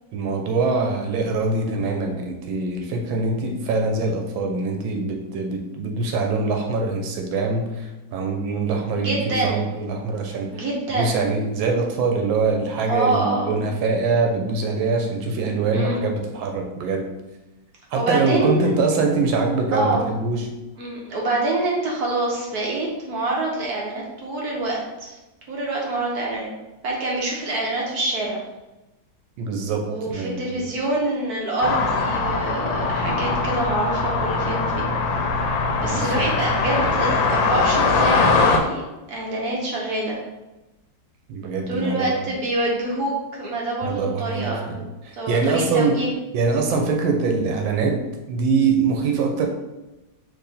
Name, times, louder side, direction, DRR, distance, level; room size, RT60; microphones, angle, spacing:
voice 1, 0.1-10.7 11.0-17.1 17.9-20.5 29.4-30.6 35.8-36.2 41.3-42.3 43.8-46.0 46.3-49.5, right 4 dB, 80° right, 2 dB, 1.5 m, -23 dB
voice 2, 9.0-9.7 10.5-11.2 12.9-13.6 15.7-16.1 17.9-18.7 19.7-20.1 20.8-25.2 25.5-26.5 26.8-28.4 29.8-34.9 35.8-38.8 39.1-40.2 41.7-44.7 45.1-46.1, right 2 dB, 60° right, -2 dB, 1.3 m, -26 dB
sound 1, 31.6-38.6, left 4 dB, 80° left, 1.4 m, -21 dB
4.7 x 2.7 x 4.1 m, 1.0 s
omnidirectional pair, 2.1 m